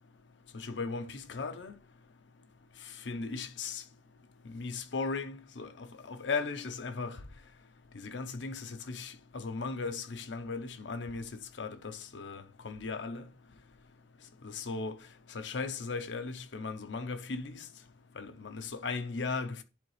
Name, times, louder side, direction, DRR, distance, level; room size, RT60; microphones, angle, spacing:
voice 1, 0.5-1.8 3.1-3.8 4.4-7.2 8.0-13.3 14.4-15.0 15.3-17.7 18.2-19.6, left 4 dB, 85° left, 0.7 m, -37 dB
10.5 x 4.0 x 3.2 m
head